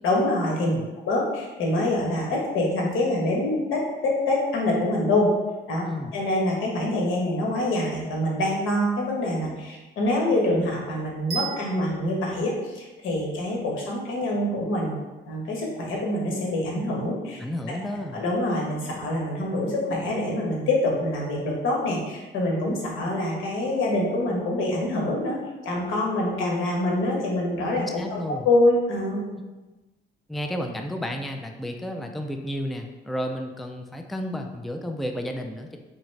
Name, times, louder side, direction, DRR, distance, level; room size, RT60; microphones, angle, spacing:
voice 1, 0.0-0.7 1.1-5.3 5.7-5.8 6.1-15.0 15.3-17.4 17.7-17.8 18.1-25.4 25.6-29.2, left 1 dB, 85° left, -1 dB, 1.1 m, -25 dB
sound 1, 11.3-13.4, right 6 dB, 50° right, 1.1 m, -36 dB
voice 2, 17.4-18.2 27.7-28.5 30.3-35.8, equal, ahead, 4 dB, 0.4 m, -32 dB
4.0 x 3.5 x 3.2 m, 1.2 s
cardioid pair, 90°, 20 cm